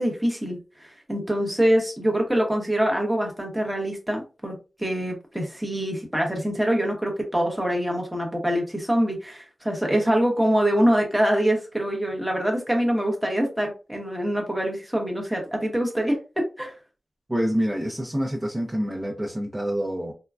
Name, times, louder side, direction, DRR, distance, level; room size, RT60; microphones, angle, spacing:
voice 1, 0.0-16.7, equal, 5° right, 1 dB, 1.0 m, -24 dB
voice 2, 17.3-20.1, equal, 20° right, -3 dB, 0.7 m, -27 dB
3.6 x 2.2 x 2.3 m, 0.32 s
wide cardioid pair, 80°, 0 cm